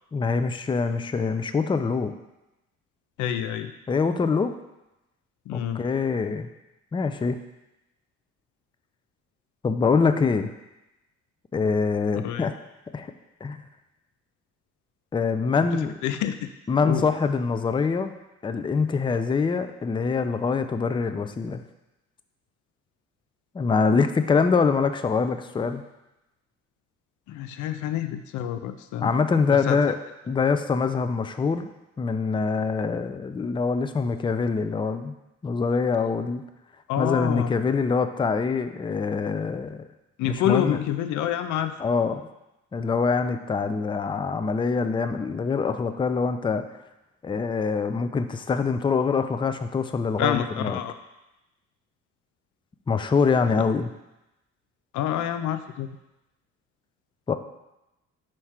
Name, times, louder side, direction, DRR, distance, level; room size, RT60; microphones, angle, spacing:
voice 1, 0.1-2.1 3.9-4.5 5.5-6.5 6.9-7.4 9.6-10.5 11.5-12.5 12.9-13.1 13.4-13.6 15.1-15.9 16.7-18.1 18.4-21.6 23.5-25.8 29.0-30.0 30.3-31.7 32.0-35.1 35.4-36.4 37.0-39.9 40.2-40.8 41.8-42.2 42.7-46.6 47.2-50.8 52.9-53.9 57.3-57.4, left 5 dB, 15° left, 9 dB, 0.4 m, -24 dB
voice 2, 3.2-3.7 5.5-5.8 12.2-12.5 16.0-16.5 16.8-17.1 27.3-29.1 29.5-29.8 36.9-37.5 40.2-41.7 50.2-50.9 53.5-53.6 54.9-56.0, left 10 dB, 75° left, 10 dB, 0.5 m, -27 dB
4.8 x 4.5 x 5.7 m, 0.95 s
cardioid pair, 90°, 30 cm